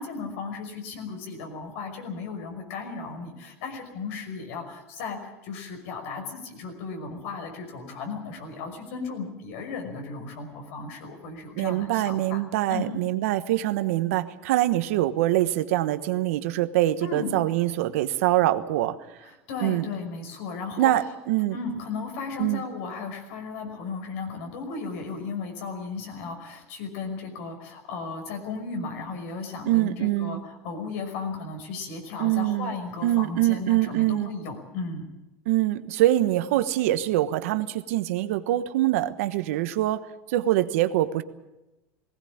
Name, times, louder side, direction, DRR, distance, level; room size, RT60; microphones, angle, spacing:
voice 1, 0.0-12.4 12.7-12.9 17.0-17.3 19.2-20.9 21.5-35.1, left 4 dB, 75° left, 4 dB, 5.6 m, -35 dB
voice 2, 11.6-19.0 19.6-19.9 20.8-21.6 22.4-22.6 29.6-30.4 32.2-32.7 33.0-34.3 35.5-41.2, right 15 dB, 80° right, 11 dB, 1.2 m, -24 dB
18.5 x 18.0 x 8.7 m, 1.0 s
supercardioid pair, 115°, 8 cm